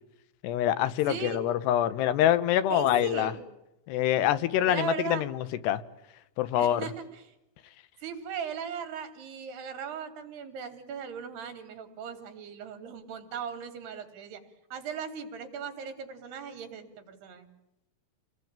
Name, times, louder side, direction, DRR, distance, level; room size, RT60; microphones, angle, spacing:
voice 1, 0.4-3.3 3.9-5.8 6.4-6.9, left 11 dB, 85° left, 15 dB, 3.2 m, -25 dB
voice 2, 1.1-1.4 2.7-3.4 4.6-5.3 6.6-7.3 8.0-14.4 14.7-17.5, right 7 dB, 75° right, 7 dB, 4.8 m, -38 dB
29.0 x 20.0 x 8.9 m, 0.91 s
omnidirectional pair, 4.7 m